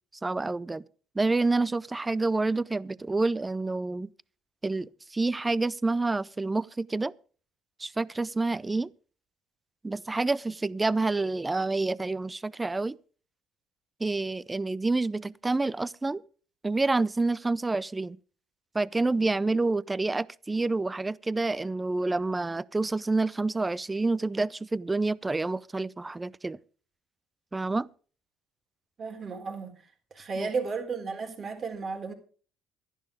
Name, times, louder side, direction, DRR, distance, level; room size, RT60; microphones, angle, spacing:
voice 1, 0.2-0.8 1.2-4.1 4.6-7.1 7.8-8.9 9.8-12.9 14.0-16.2 16.6-18.2 18.7-26.6 27.5-27.9 30.4-30.5, right 3 dB, 15° right, 0.5 m, -28 dB
voice 2, 29.0-29.7 30.1-32.1, right 4 dB, 40° right, 3.8 m, -33 dB
12.5 x 11.0 x 5.0 m
cardioid pair, 100°, 0 cm